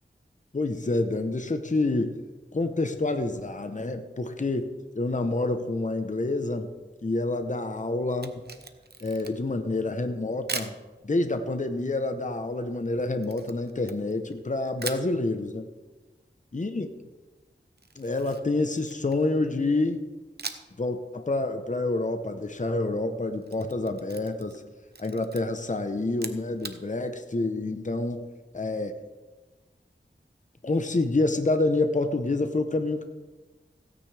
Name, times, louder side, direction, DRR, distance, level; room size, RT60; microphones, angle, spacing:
voice 1, 0.5-2.2 2.5-6.7 7.0-8.4 9.0-10.7 11.0-15.7 16.5-16.9 18.0-20.0 20.8-24.6 25.0-28.3 28.5-29.0 30.6-33.0, left 2 dB, 40° left, 7 dB, 0.9 m, -28 dB
Camera, 8.1-9.6 10.5-10.8 13.2-14.4 14.8-15.1 17.8-19.3 20.4-20.8 21.1-21.2 23.2-24.6 24.9-25.4 26.1-26.8, right 4 dB, 55° right, 0.9 m, -39 dB
16.5 x 9.3 x 3.4 m, 1.3 s
wide cardioid pair, 45°, 20 cm